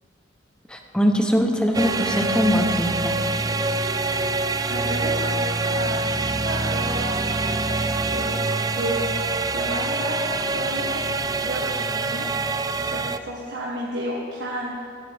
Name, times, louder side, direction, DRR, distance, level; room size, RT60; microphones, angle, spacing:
voice 1, 0.7-3.1, equal, 5° left, 3 dB, 0.9 m, -22 dB
sound 1, 1.7-13.2, right 3 dB, 20° right, 0.3 m, -25 dB
voice 2, 4.7-8.3 8.7-9.1 9.5-11.0 11.4-12.3 12.7-14.7, right 1 dB, 70° right, -3 dB, 1.6 m, -32 dB
16.0 x 12.5 x 3.6 m, 2.2 s
head